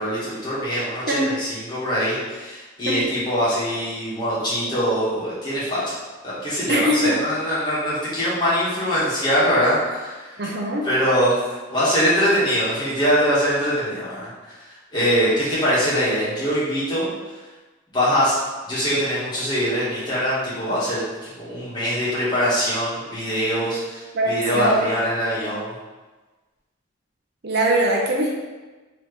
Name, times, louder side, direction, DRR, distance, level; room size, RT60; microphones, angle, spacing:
voice 1, 0.0-6.0 6.2-10.4 10.8-14.3 14.9-17.0 17.9-18.4 18.7-21.0 21.4-25.7, equal, 20° left, -10 dB, 1.4 m, -23 dB
voice 2, 6.7-7.1 10.4-10.9 24.1-24.9 27.4-28.3, right 1 dB, 50° right, -2 dB, 0.6 m, -21 dB
4.2 x 3.0 x 3.3 m, 1.3 s
head